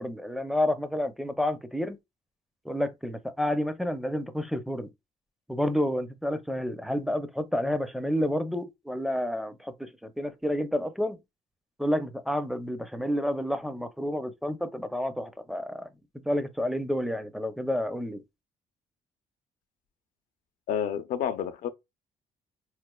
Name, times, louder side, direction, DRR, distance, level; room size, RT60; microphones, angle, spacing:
voice 1, 0.0-2.0 2.6-4.9 5.5-11.2 11.8-15.9 16.2-18.2, left 1 dB, ahead, 0.5 m, -30 dB
voice 2, 20.7-21.7, left 8 dB, 70° left, 0.5 m, -29 dB
4.1 x 3.1 x 2.2 m
cardioid pair, 80°, 14 cm